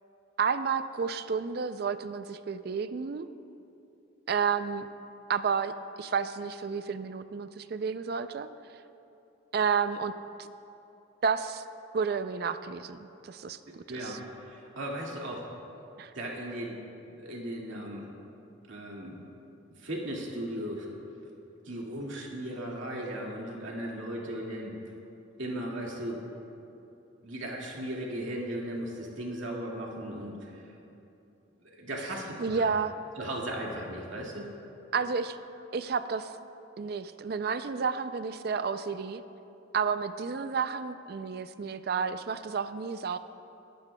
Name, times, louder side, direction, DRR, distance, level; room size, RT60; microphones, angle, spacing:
voice 1, 0.4-3.3 4.3-4.9 5.3-5.7 6.0-8.5 9.5-10.1 11.2-11.6 11.9-14.2 16.0-16.1 32.4-32.9 34.9-35.4 35.7-36.3 36.8-39.2 39.7-43.2, right 6 dB, 50° right, 11 dB, 0.4 m, -31 dB
voice 2, 13.7-15.5 16.1-16.8 17.1-18.1 18.7-19.2 19.8-20.9 21.6-24.7 25.4-26.2 27.2-30.7 31.6-32.7 33.2-34.5, right 1 dB, 75° right, -3 dB, 2.1 m, -37 dB
22.5 x 12.0 x 2.3 m, 2.8 s
head